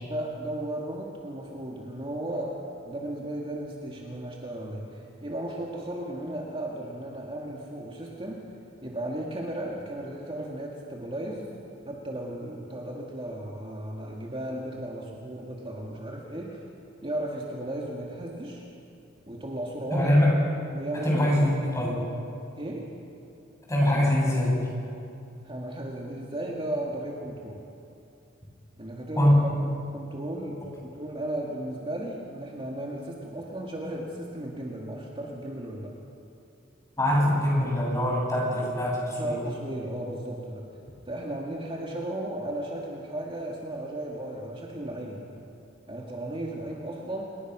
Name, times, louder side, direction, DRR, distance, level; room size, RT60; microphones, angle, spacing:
voice 1, 0.1-2.6 2.8-8.5 8.8-11.5 11.9-16.6 17.0-18.6 19.3-20.1 20.7-21.5 22.5-22.9 25.4-27.6 28.8-35.9 39.2-40.7 41.1-45.3 45.9-47.2, right 1 dB, 30° right, -2 dB, 2.2 m, -35 dB
voice 2, 19.9-20.4 21.0-21.5 21.8-22.1 23.7-24.7 29.2-29.5 37.0-39.4, left 1 dB, 15° left, -3 dB, 7.4 m, -23 dB
28.5 x 20.0 x 6.3 m, 2.6 s
head